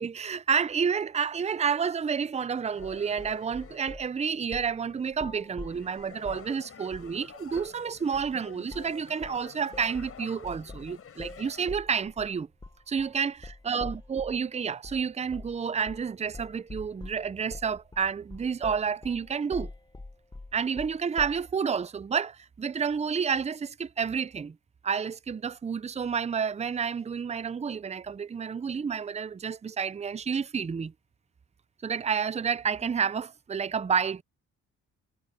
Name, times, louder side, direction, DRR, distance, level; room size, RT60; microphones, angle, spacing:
voice 1, 0.0-12.5 12.9-19.7 20.5-24.6 24.8-30.9 31.8-34.2, right 6 dB, 20° right, 0.6 m, -30 dB
sound 1, 2.6-3.8 4.5-11.7, left 7 dB, 50° left, 4.6 m, -49 dB
sound 2, 2.8-4.1 4.5-4.8 5.1-6.5 6.9-7.2 7.5-7.8 8.1-8.4 8.7-9.0 9.2-14.4 14.8-15.0 15.3-15.6 15.9-16.1 16.3-21.5, left 2 dB, 15° left, 1.3 m, -44 dB
cardioid pair, 90°, 30 cm